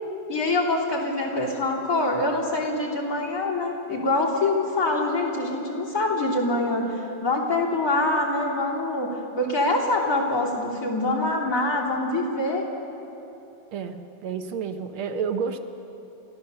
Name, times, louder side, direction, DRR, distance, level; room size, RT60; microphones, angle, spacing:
voice 1, 0.3-12.6, left 2 dB, 40° left, -5 dB, 3.4 m, -25 dB
voice 2, 13.7-15.6, right 6 dB, 80° right, 7 dB, 1.9 m, -30 dB
28.5 x 13.5 x 6.8 m, 3.0 s
omnidirectional pair, 2.3 m